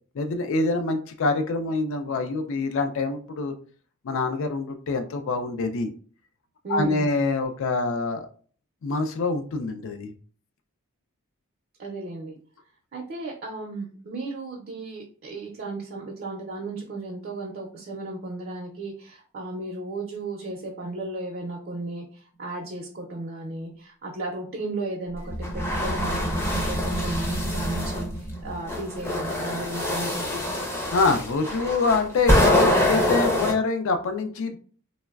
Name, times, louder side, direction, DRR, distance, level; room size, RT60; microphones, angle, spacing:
voice 1, 0.1-3.5 4.0-5.9 6.7-8.3 8.8-10.1 30.9-34.6, left 3 dB, 65° left, 8 dB, 0.4 m, -25 dB
voice 2, 6.6-7.1 11.8-12.4 12.9-30.6, right 2 dB, 45° right, -1 dB, 0.5 m, -35 dB
sound 1, 25.1-30.5, right 1 dB, 45° left, 0.8 m, -32 dB
sound 2, 25.4-28.0 28.7-33.5, left 1 dB, 10° left, 0.5 m, -25 dB
3.1 x 2.0 x 2.3 m, 0.44 s
head